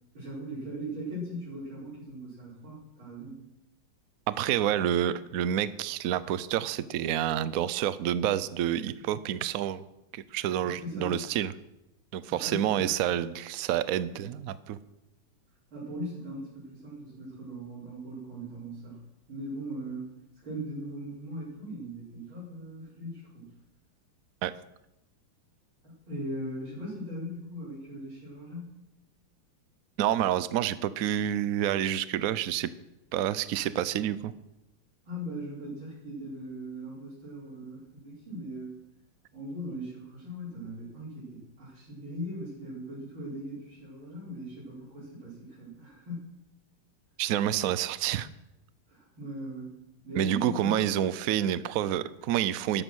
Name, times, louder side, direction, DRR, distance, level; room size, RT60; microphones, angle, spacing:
voice 1, 0.1-3.4 10.6-11.2 12.3-12.9 15.7-19.0 19.3-20.1 20.4-23.5 25.8-28.8 35.1-38.8 39.3-46.4 48.9-49.7 50.0-50.9, right 1 dB, 70° right, -9 dB, 5.8 m, -39 dB
voice 2, 4.3-9.8 10.1-11.5 12.1-14.8 24.4-24.5 30.0-32.7 33.1-34.3 47.2-48.3 50.1-52.8, right 11 dB, 85° right, 15 dB, 0.7 m, -28 dB
13.0 x 12.5 x 6.3 m, 0.90 s
omnidirectional pair, 2.3 m